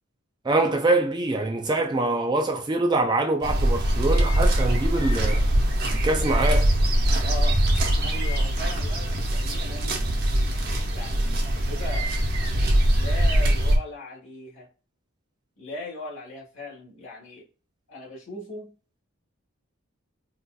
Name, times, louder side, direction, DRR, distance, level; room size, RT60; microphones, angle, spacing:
voice 1, 0.4-5.4 6.0-6.7, right 2 dB, 20° right, 0.3 m, -24 dB
sound 1, 3.4-13.8, right 1 dB, 45° right, 0.7 m, -22 dB
voice 2, 7.2-10.1 10.9-12.2 13.0-14.7 15.6-17.5 17.9-18.7, left 1 dB, 60° left, 1.5 m, -39 dB
3.9 x 2.4 x 2.2 m
head